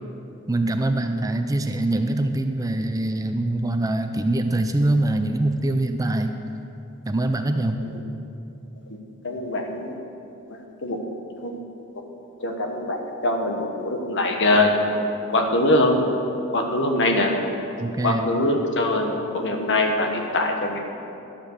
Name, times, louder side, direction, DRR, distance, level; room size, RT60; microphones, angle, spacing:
voice 1, 0.5-6.3 7.1-7.8 17.8-18.3, right 1 dB, 15° right, 7 dB, 0.4 m, -23 dB
voice 2, 9.2-9.9 10.8-11.0 11.4-11.5 12.4-14.7 15.3-16.0 16.5-17.3 18.0-20.8, left 2 dB, 55° left, 3 dB, 1.4 m, -22 dB
11.5 x 8.1 x 6.7 m, 2.8 s
head